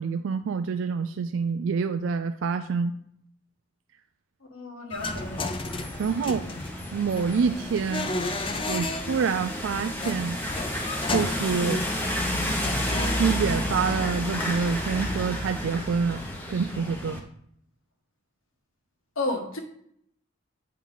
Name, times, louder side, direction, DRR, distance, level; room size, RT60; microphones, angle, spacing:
voice 1, 0.0-3.0 5.9-6.5 6.9-8.1 8.7-10.4 11.1-11.8 13.1-16.2 16.5-17.2, right 5 dB, 75° right, 9 dB, 0.4 m, -27 dB
voice 2, 4.5-5.6 19.1-19.6, left 2 dB, 80° left, 3 dB, 1.3 m, -32 dB
sound 1, 4.9-13.7, left 2 dB, 25° left, 0.5 m, -34 dB
sound 2, 5.0-17.2, left 1 dB, 10° left, 0.9 m, -31 dB
8.3 x 4.5 x 3.9 m, 0.69 s
head